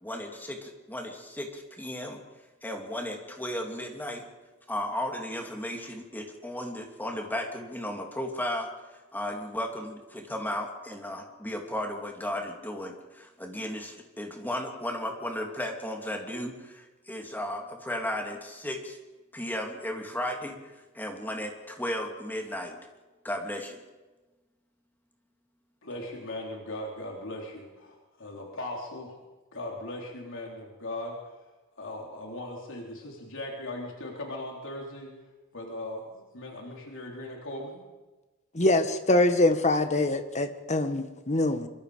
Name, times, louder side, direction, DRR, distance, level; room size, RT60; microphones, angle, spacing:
voice 1, 0.0-2.2 2.6-4.2 4.7-8.7 9.1-19.0 19.3-20.6 20.9-22.8 23.2-23.8, left 1 dB, 10° left, 2 dB, 3.0 m, -35 dB
voice 2, 25.8-29.2 29.5-31.2 31.8-35.1 35.5-37.8, left 1 dB, 60° left, -1 dB, 3.8 m, -38 dB
voice 3, 38.5-41.7, left 2 dB, 35° left, 8 dB, 1.7 m, -24 dB
26.0 x 24.0 x 5.2 m, 1.2 s
head